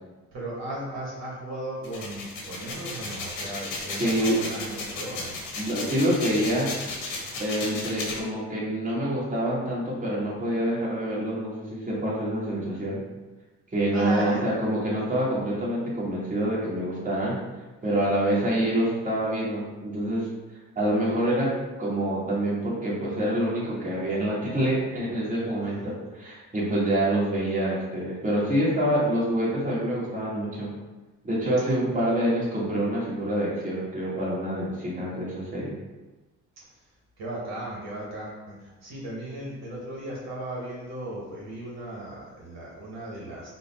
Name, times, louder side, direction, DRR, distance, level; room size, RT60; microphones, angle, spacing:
voice 1, 0.3-5.3 13.9-14.4 25.6-25.9 37.2-43.6, right 1 dB, 60° right, -5 dB, 1.0 m, -36 dB
sound 1, 1.8-8.2, left 3 dB, 90° left, 1.1 m, -34 dB
voice 2, 4.0-4.4 5.6-6.7 7.4-13.0 13.7-17.4 17.8-20.3 20.7-21.5 21.8-30.7 31.2-35.7, right 1 dB, 25° right, -7 dB, 1.4 m, -26 dB
3.9 x 2.1 x 4.0 m, 1.2 s
cardioid pair, 110°, 30 cm